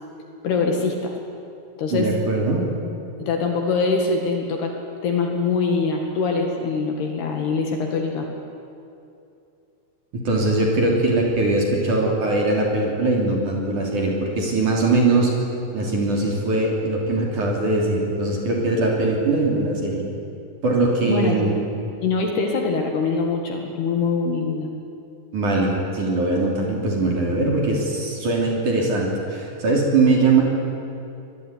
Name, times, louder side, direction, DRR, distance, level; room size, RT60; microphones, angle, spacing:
voice 1, 0.4-1.2 1.8-2.1 3.2-4.7 5.0-8.3 21.1-21.4 22.0-24.7, left 4 dB, 60° left, 2 dB, 3.5 m, -23 dB
voice 2, 1.9-2.6 10.1-15.3 15.7-20.0 20.6-21.5 25.3-30.4, right 2 dB, 40° right, -1 dB, 4.1 m, -21 dB
25.0 x 20.0 x 9.8 m, 2.6 s
omnidirectional pair, 6.0 m